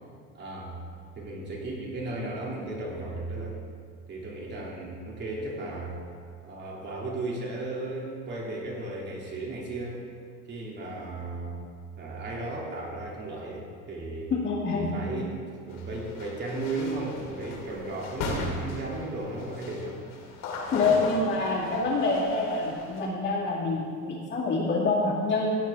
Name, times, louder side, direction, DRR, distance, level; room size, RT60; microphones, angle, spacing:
voice 1, 0.3-0.7 1.1-3.6 4.1-6.0 6.4-10.0 10.5-11.6 12.0-14.3 14.7-15.4 15.7-20.0, right 2 dB, 30° right, -2 dB, 2.6 m, -35 dB
voice 2, 14.3-14.9 20.7-25.5, left 3 dB, 30° left, -8 dB, 2.2 m, -26 dB
sound 1, 15.7-23.0, left 3 dB, 70° left, 2.5 m, -38 dB
16.0 x 9.0 x 3.5 m, 2.1 s
cardioid pair, 140°, 34 cm